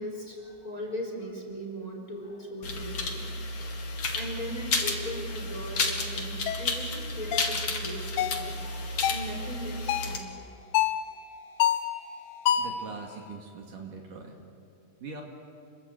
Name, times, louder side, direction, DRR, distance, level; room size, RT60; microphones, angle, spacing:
voice 1, 0.0-10.6, equal, 25° left, 0 dB, 4.2 m, -39 dB
sound 1, 2.6-10.2, left 3 dB, 40° left, 2.6 m, -32 dB
sound 2, 6.5-6.7 7.3-7.6 8.2-8.5 9.0-9.3 9.9-10.2 10.7-11.0 11.6-11.9 12.5-12.8, left 11 dB, 85° left, 2.9 m, -26 dB
voice 2, 12.6-14.3 15.0-15.2, right 4 dB, 60° right, 0 dB, 3.7 m, -42 dB
28.5 x 22.0 x 8.3 m, 2.4 s
omnidirectional pair, 4.4 m